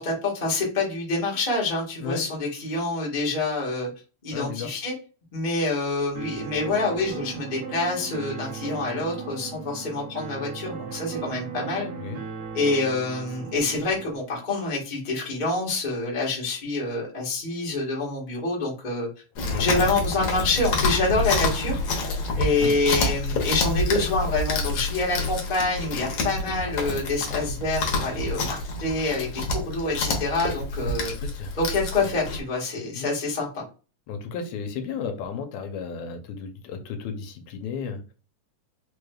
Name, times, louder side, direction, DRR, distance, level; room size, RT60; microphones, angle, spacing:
voice 1, 0.0-3.9 4.2-4.9 5.3-11.9 12.5-19.1 19.6-21.8 22.4-31.1 31.6-33.6, left 3 dB, 45° left, -3 dB, 0.5 m, -27 dB
voice 2, 4.3-4.7 12.0-12.2 19.5-19.7 22.2-22.7 31.0-31.6 32.9-33.1 34.1-38.1, left 6 dB, 80° left, 6 dB, 1.9 m, -34 dB
sound 1, 6.1-14.2, right 6 dB, 65° right, 1.5 m, -37 dB
Chewing mastication, 19.4-32.4, left 2 dB, 65° left, 1.8 m, -28 dB
4.8 x 3.2 x 2.3 m, 0.34 s
omnidirectional pair, 3.4 m